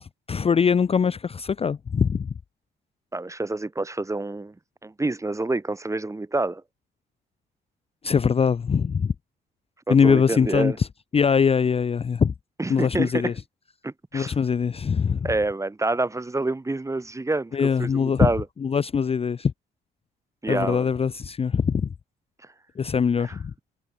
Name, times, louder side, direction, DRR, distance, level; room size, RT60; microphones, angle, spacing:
voice 1, 0.3-2.3 8.0-9.1 9.9-10.9 11.1-12.3 12.7-13.3 14.1-15.3 17.5-18.3 18.6-19.5 20.5-21.9 22.8-23.5, left 6 dB, 30° left, 0.5 m, -22 dB
voice 2, 3.1-4.5 4.8-6.6 9.9-10.8 12.6-13.3 13.8-14.3 15.2-18.4 20.4-20.9 23.2-23.3, right 2 dB, 15° right, 1.5 m, -27 dB
cardioid pair, 90°, 20 cm